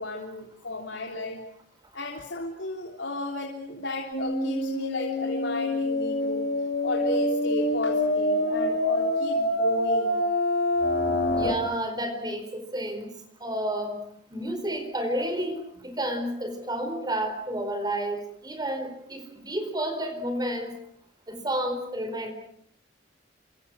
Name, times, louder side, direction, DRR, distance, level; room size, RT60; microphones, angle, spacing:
voice 1, 0.0-1.5 1.9-6.5 6.8-10.2 11.0-11.2, left 1 dB, 85° left, 1 dB, 3.5 m, -34 dB
sound 1, 4.1-11.5, left 1 dB, 60° left, 4.5 m, -26 dB
voice 2, 11.4-13.1 13.4-14.0 14.3-20.7 21.3-22.3, right 1 dB, 20° right, 6 dB, 4.6 m, -31 dB
29.5 x 26.0 x 6.3 m, 0.64 s
head